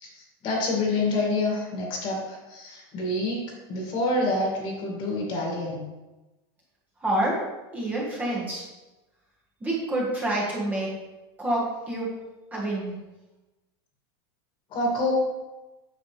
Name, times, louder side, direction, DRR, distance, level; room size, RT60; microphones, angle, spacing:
voice 1, 0.0-5.8 14.7-15.1, left 2 dB, 40° left, -1 dB, 2.3 m, -27 dB
voice 2, 7.0-7.4 7.7-8.6 9.6-10.9 11.4-12.1 12.5-13.0, right 1 dB, 10° right, -6 dB, 1.7 m, -27 dB
8.5 x 5.8 x 3.4 m, 1.1 s
supercardioid pair, 145°, 13 cm